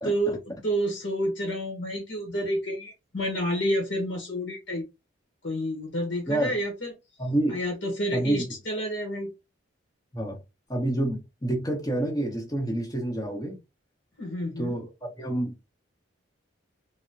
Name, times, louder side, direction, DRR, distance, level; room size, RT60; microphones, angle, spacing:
voice 1, 0.0-4.8 5.4-6.9 7.5-9.3 14.2-14.7, equal, 60° left, 1.0 m, -29 dB
voice 2, 7.2-7.6 8.1-8.4 10.1-10.4 10.7-13.6 14.6-15.6, right 1 dB, 20° left, 1.1 m, -28 dB
3.5 x 2.1 x 2.6 m
head